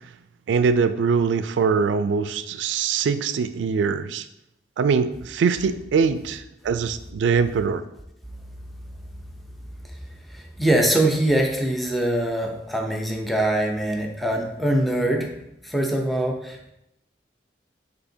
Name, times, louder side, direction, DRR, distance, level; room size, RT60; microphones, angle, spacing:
voice 1, 0.5-4.2 4.8-7.8, right 5 dB, 80° right, 12 dB, 0.3 m, -22 dB
voice 2, 10.3-15.3 15.6-16.7, right 1 dB, ahead, 1 dB, 0.5 m, -23 dB
6.4 x 2.8 x 2.7 m, 0.83 s
head